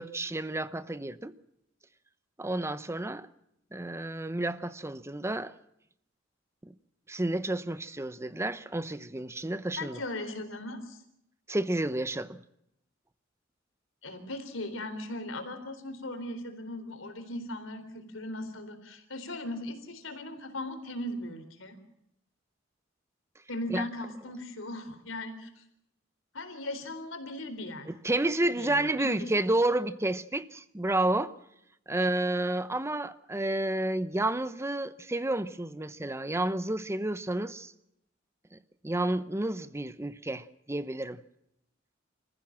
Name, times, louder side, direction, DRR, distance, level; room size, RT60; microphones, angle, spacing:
voice 1, 0.0-1.3 2.4-3.3 3.7-5.5 6.6-6.7 7.1-10.0 11.5-12.4 23.7-23.8 27.9-31.3 31.9-37.7 38.5-38.6 38.8-41.2, right 1 dB, 15° right, 0.8 m, -30 dB
voice 2, 9.8-11.0 14.0-21.8 23.5-25.6 26.3-27.9 28.4-29.3, left 1 dB, 80° left, 3.9 m, -38 dB
28.0 x 15.0 x 7.5 m
head